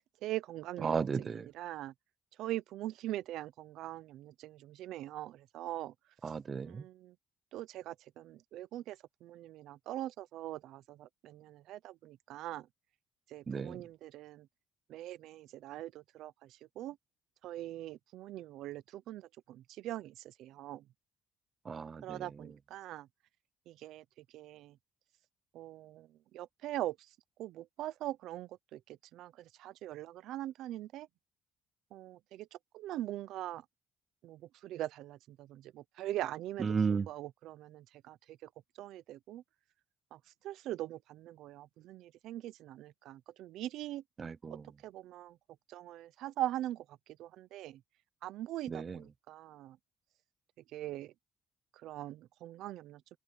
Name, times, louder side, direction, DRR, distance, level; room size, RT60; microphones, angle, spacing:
voice 1, 0.2-1.9 2.4-5.9 6.6-7.1 7.5-12.7 13.3-14.5 14.9-17.0 17.4-20.8 22.0-23.1 23.7-24.0 24.3-24.8 25.5-27.1 27.4-31.1 31.9-33.6 34.2-38.5 38.8-39.4 40.1-44.0 44.5-45.4 45.7-46.9 47.2-47.8 48.2-49.8 50.7-51.1 51.7-53.0, right 14 dB, 85° right, 0.7 m, -42 dB
voice 2, 0.8-1.5 6.2-6.8 13.5-13.8 21.7-22.2 36.6-37.1 44.2-44.6 48.7-49.0, right 5 dB, 40° right, 0.7 m, -34 dB
open air
cardioid pair, 90°, 0 cm